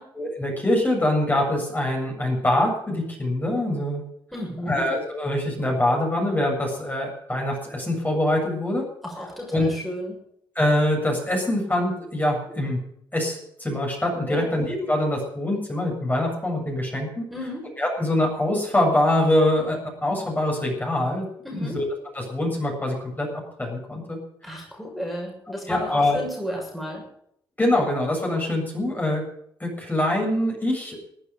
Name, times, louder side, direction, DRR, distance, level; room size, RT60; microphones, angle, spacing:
voice 1, 0.2-4.0 4.7-8.8 9.5-9.7 10.5-12.8 13.1-17.2 17.8-21.2 21.5-21.8 22.1-23.3 23.6-24.2 25.7-26.2 27.6-29.2 29.6-31.0, left 1 dB, 20° left, 0 dB, 7.6 m, -24 dB
voice 2, 4.3-4.8 9.0-10.2 14.3-14.5 17.3-17.7 21.4-21.8 24.4-27.0, equal, ahead, -2 dB, 6.9 m, -33 dB
15.5 x 9.1 x 9.3 m, 0.71 s
cardioid pair, 70°, 9 cm